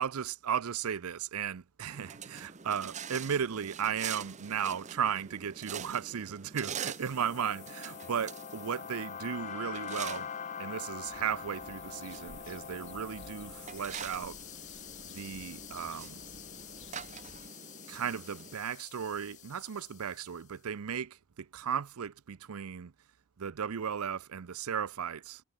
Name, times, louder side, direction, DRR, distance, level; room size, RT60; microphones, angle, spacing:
voice 1, 0.0-10.3 10.6-14.4 15.1-16.2 17.9-22.9 23.4-25.4, right 8 dB, 80° right, 0.6 m, -35 dB
sound 1, 1.9-18.5, right 7 dB, 30° right, 0.9 m, -45 dB
sound 2, 6.8-20.2, left 8 dB, 35° left, 0.4 m, -45 dB
sound 3, 11.0-17.5, left 2 dB, 60° left, 6.8 m, -57 dB
head